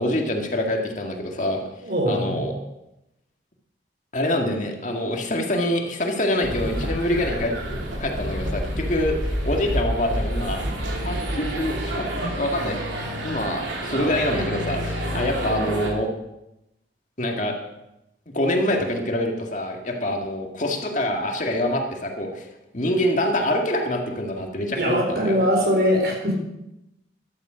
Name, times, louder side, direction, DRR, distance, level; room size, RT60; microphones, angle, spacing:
voice 1, 0.0-1.6 2.1-2.5 4.1-10.6 11.0-12.8 13.2-16.1 17.2-17.6 18.3-22.5 22.7-25.4, left 1 dB, 45° left, 2 dB, 1.9 m, -25 dB
voice 2, 1.8-2.4 24.7-26.3, equal, 55° right, 0 dB, 4.1 m, -22 dB
sound 1, 6.4-15.9, equal, 90° right, 3.1 m, -28 dB
15.0 x 11.5 x 5.1 m, 0.88 s
head